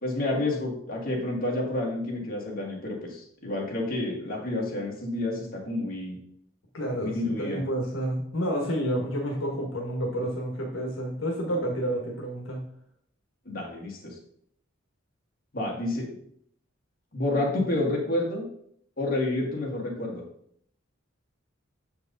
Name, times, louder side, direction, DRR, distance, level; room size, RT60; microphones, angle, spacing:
voice 1, 0.0-6.2 7.0-7.6 13.5-14.2 15.5-16.1 17.1-18.5 19.0-20.2, left 2 dB, 50° left, -2 dB, 1.8 m, -29 dB
voice 2, 6.7-12.6, equal, 80° left, 0 dB, 1.3 m, -29 dB
6.6 x 4.6 x 3.9 m, 0.67 s
head